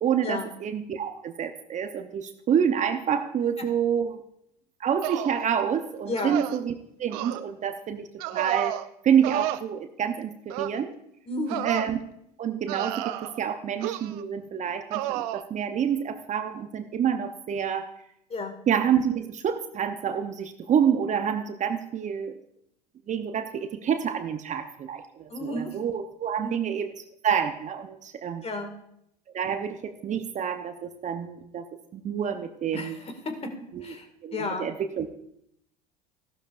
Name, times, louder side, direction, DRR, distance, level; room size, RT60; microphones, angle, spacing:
voice 1, 0.0-4.2 4.8-6.7 7.0-8.1 8.3-8.8 9.0-10.9 11.6-12.0 12.4-17.9 18.7-22.3 23.1-26.9 27.2-28.4 29.3-31.6 31.9-32.9 33.7-33.9 34.2-35.1, right 8 dB, 35° right, 7 dB, 0.9 m, -27 dB
sound 1, 5.0-5.4 6.2-6.6 7.1-7.4 8.2-8.9 9.2-9.6 10.5-10.8 11.5-11.9 12.7-13.4 13.8-14.2 14.9-15.4, right 14 dB, 65° right, 0.6 m, -31 dB
voice 2, 6.1-6.4 11.3-11.7 18.3-18.5 25.3-25.8 26.4-26.6 28.4-28.7 32.7-33.3 33.8-34.1 34.3-34.7, left 2 dB, 30° left, 6 dB, 2.2 m, -32 dB
14.5 x 12.0 x 2.6 m, 0.76 s
hypercardioid pair, 75°, 21 cm